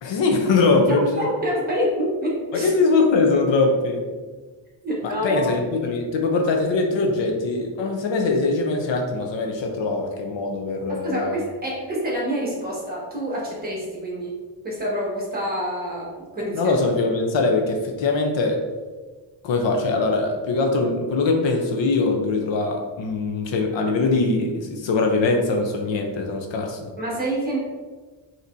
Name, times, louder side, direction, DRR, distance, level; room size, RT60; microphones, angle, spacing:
voice 1, 0.0-1.3 2.5-4.0 5.0-11.4 16.5-18.6 19.4-26.9, left 3 dB, 70° left, 2 dB, 0.7 m, -22 dB
voice 2, 0.9-2.7 4.8-5.5 11.0-14.3 14.6-16.7 27.0-27.6, equal, 20° right, -4 dB, 1.3 m, -27 dB
5.2 x 3.0 x 2.6 m, 1.3 s
cardioid pair, 140°, 46 cm